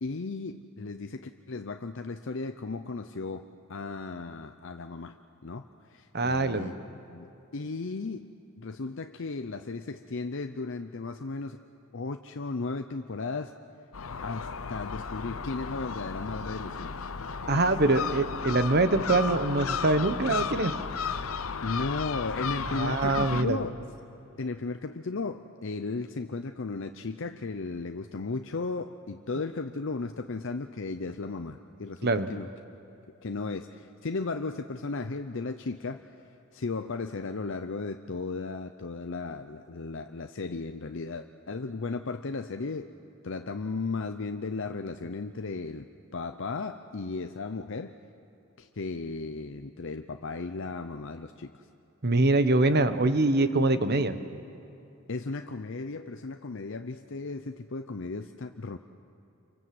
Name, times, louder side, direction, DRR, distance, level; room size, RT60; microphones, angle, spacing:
voice 1, 0.0-5.2 5.4-6.7 7.1-11.6 11.9-13.5 14.2-16.9 17.4-18.0 21.6-23.8 24.4-32.5 33.2-36.1 36.5-42.9 43.2-45.9 46.1-48.0 48.6-51.7 55.1-58.8, left 3 dB, 65° left, 7 dB, 0.7 m, -35 dB
voice 2, 6.1-6.7 17.5-20.7 22.7-23.6 32.0-32.3 52.0-54.1, right 2 dB, 50° right, 10 dB, 1.2 m, -24 dB
Gull seagull, 13.9-23.4, left 5 dB, 90° left, 0.9 m, -34 dB
28.5 x 24.5 x 7.8 m, 2.8 s
head